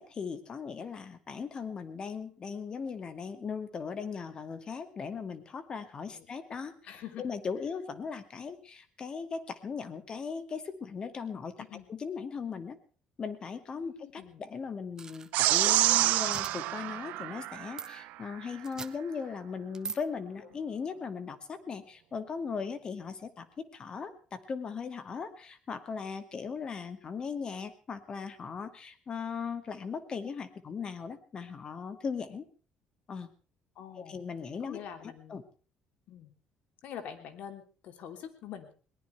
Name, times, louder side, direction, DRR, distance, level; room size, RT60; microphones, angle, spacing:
voice 1, 0.0-6.7 7.2-11.5 11.9-12.8 13.2-32.4 33.1-33.3 34.1-35.4, left 5 dB, 35° left, 10 dB, 2.3 m, -38 dB
voice 2, 6.8-7.3 11.6-11.9 13.7-14.4 20.4-20.6 33.7-34.3 34.6-35.4 36.1-36.3 36.8-38.7, left 9 dB, 65° left, 7 dB, 3.3 m, -45 dB
sound 1, 15.0-15.8 16.3-16.5 17.8-17.9 18.6-18.9 19.7-20.0, right 5 dB, 25° right, 1.3 m, -40 dB
sound 2, 15.3-18.0, right 17 dB, 85° right, 0.8 m, -27 dB
22.0 x 19.5 x 3.4 m, 0.39 s
cardioid pair, 135°, 3 cm